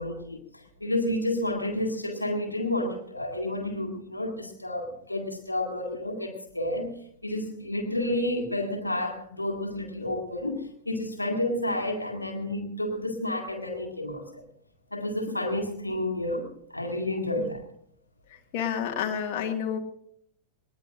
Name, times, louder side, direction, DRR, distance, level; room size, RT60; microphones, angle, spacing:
voice 1, 0.0-7.0 7.2-14.4 14.9-17.6, left 1 dB, 85° left, 3 dB, 2.0 m, -30 dB
voice 2, 18.5-19.8, left 8 dB, 45° left, 2 dB, 1.9 m, -29 dB
21.0 x 19.5 x 2.5 m, 0.66 s
figure-of-eight pair, 90°, 0 cm